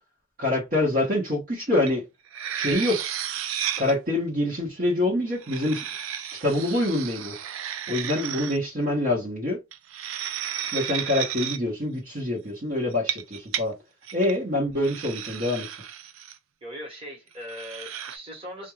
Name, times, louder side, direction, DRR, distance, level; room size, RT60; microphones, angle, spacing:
voice 1, 0.4-2.0 2.5-3.0 3.8-5.8 6.4-7.4 7.9-9.6 10.7-13.7 14.1-15.7, left 1 dB, 45° right, 1.1 m, -25 dB
sound 1, 1.9-2.0 2.3-3.9 5.3-8.6 9.7-11.6 12.9-13.6 14.0-14.3 14.8-16.4 17.4-18.2, right 9 dB, 80° right, 0.4 m, -33 dB
voice 2, 16.6-18.7, equal, 30° right, 1.3 m, -39 dB
2.5 x 2.3 x 3.1 m
head